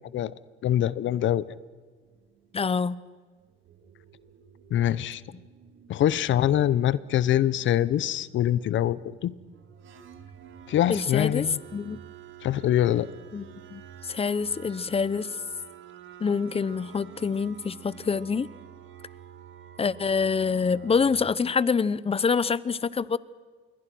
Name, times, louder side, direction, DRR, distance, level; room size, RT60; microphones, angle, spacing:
voice 1, 0.6-1.4 4.7-5.2 5.9-9.3 10.7-11.6 12.4-13.1, left 11 dB, 70° left, 19 dB, 0.8 m, -24 dB
sound 1, 2.0-2.9 3.4-21.1, right 9 dB, 75° right, 2.4 m, -49 dB
voice 2, 2.5-3.0 10.9-11.5 11.7-12.0 13.3-13.5 13.7-15.3 16.2-18.5 19.8-23.2, left 5 dB, 30° left, 19 dB, 0.9 m, -26 dB
27.5 x 22.5 x 6.2 m, 1.5 s
cardioid pair, 90°, 20 cm